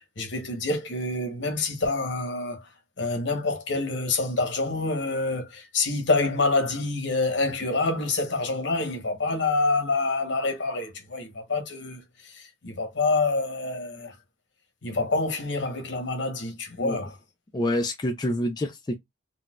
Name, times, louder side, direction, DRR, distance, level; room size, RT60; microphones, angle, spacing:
voice 1, 0.2-2.7 3.0-14.1 14.8-17.2, left 3 dB, 75° left, 1.0 m, -27 dB
voice 2, 17.5-18.9, left 1 dB, 20° left, 0.3 m, -27 dB
4.0 x 2.2 x 2.3 m
head